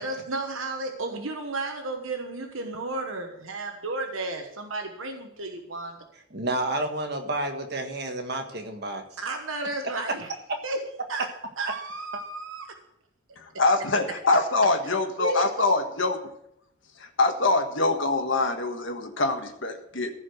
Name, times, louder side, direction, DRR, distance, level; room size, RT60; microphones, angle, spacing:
voice 1, 0.0-6.0 9.2-10.3 10.6-10.8 11.1-11.3 11.6-12.7 15.2-15.4, right 2 dB, 80° right, 4 dB, 1.3 m, -33 dB
voice 2, 6.3-9.0 9.8-9.9 10.5-10.6, right 2 dB, 50° right, 4 dB, 1.6 m, -30 dB
voice 3, 13.4-16.2 17.0-20.1, left 3 dB, 65° left, 5 dB, 1.5 m, -24 dB
15.0 x 5.1 x 7.8 m, 0.78 s
head